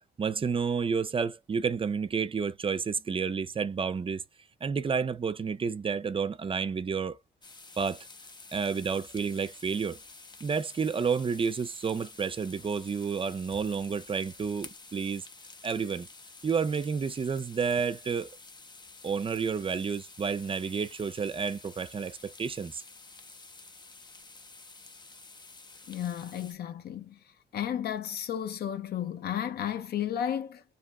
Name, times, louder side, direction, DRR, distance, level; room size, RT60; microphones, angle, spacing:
voice 1, 0.2-4.2 4.6-7.2 7.8-8.0 8.5-10.0 10.4-15.2 15.6-16.1 16.4-18.3 19.0-22.8, right 5 dB, 35° right, 0.4 m, -30 dB
sound 1, 7.4-26.5, left 3 dB, 25° left, 0.6 m, -50 dB
voice 2, 25.9-27.2 27.5-30.6, left 10 dB, 75° left, 0.5 m, -33 dB
2.6 x 2.0 x 3.5 m
cardioid pair, 65°, 16 cm